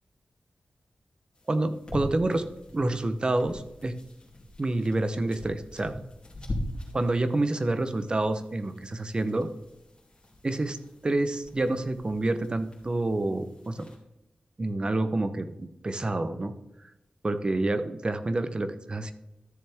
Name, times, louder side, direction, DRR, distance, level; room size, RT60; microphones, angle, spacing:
sound 1, 1.3-14.0, left 1 dB, 35° left, 2.8 m, -42 dB
voice 1, 1.5-2.5 2.7-3.9 4.6-5.9 6.9-9.5 10.4-10.8 11.0-13.9 14.6-16.5 17.2-19.1, right 2 dB, 35° right, 10 dB, 0.7 m, -28 dB
12.5 x 6.9 x 3.5 m, 0.91 s
wide cardioid pair, 110°, 3 cm